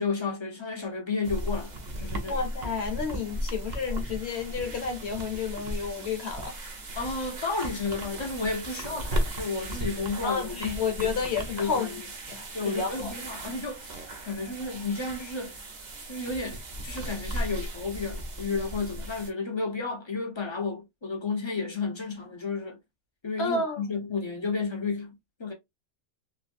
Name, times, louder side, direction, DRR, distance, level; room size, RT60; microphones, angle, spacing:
voice 1, 0.0-2.4 7.0-11.2 11.5-12.0 12.5-15.6 16.1-22.8 23.2-25.1 25.4-25.5, left 4 dB, 35° left, 0.4 m, -32 dB
sound 1, 1.2-19.3, right 1 dB, 45° right, 0.6 m, -36 dB
voice 2, 2.3-6.6 10.2-11.9 12.3-13.1 23.4-23.8, left 5 dB, 55° left, 1.0 m, -31 dB
3.1 x 2.6 x 2.5 m
omnidirectional pair, 1.5 m